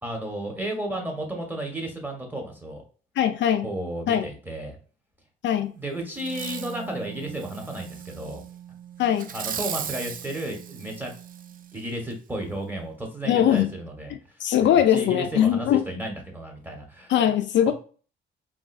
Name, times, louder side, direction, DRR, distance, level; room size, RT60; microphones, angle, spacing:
voice 1, 0.0-2.8 3.6-4.8 5.7-8.4 9.3-11.1 11.7-14.1 14.6-17.1, right 1 dB, 10° right, 1.2 m, -33 dB
voice 2, 3.2-3.6 4.1-4.3 5.4-5.7 9.0-9.3 13.3-13.7 14.4-15.8 17.1-17.7, left 10 dB, 65° left, 0.4 m, -21 dB
Wind instrument woodwind instrument, 6.1-11.8, right 10 dB, 70° right, 1.2 m, -43 dB
Fireworks, 6.2-6.8 7.3-8.4 9.2-11.5 12.1-12.2, right 8 dB, 45° right, 0.4 m, -37 dB
3.9 x 2.5 x 2.4 m
cardioid pair, 90°, 20 cm